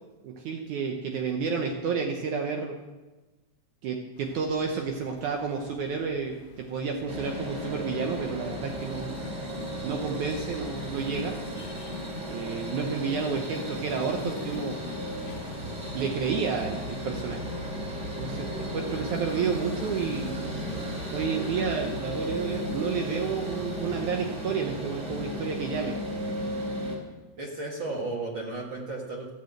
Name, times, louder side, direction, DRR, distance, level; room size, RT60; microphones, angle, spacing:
voice 1, 0.2-2.8 3.8-9.2 9.8-11.3 12.3-14.8 15.9-17.4 18.2-20.4 21.1-25.9, right 5 dB, 70° right, 2 dB, 2.3 m, -30 dB
sound 1, 4.1-22.8, left 6 dB, 65° left, 1.2 m, -49 dB
sound 2, 7.1-27.0, equal, 25° right, 2.9 m, -35 dB
voice 2, 27.4-29.3, right 2 dB, 50° right, -1 dB, 1.7 m, -34 dB
14.0 x 6.8 x 7.9 m, 1.2 s
omnidirectional pair, 3.9 m